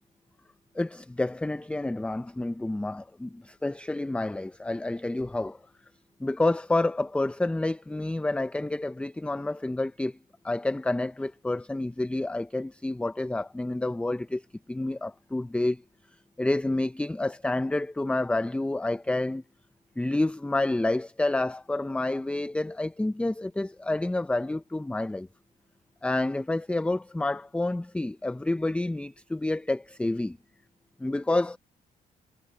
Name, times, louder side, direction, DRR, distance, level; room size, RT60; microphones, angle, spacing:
voice 1, 0.8-5.6 6.2-10.2 10.4-14.4 14.7-15.8 16.4-19.4 20.0-25.3 26.0-30.4 31.0-31.6, left 2 dB, 5° left, 0.5 m, -29 dB
cardioid pair, 90°, 16 cm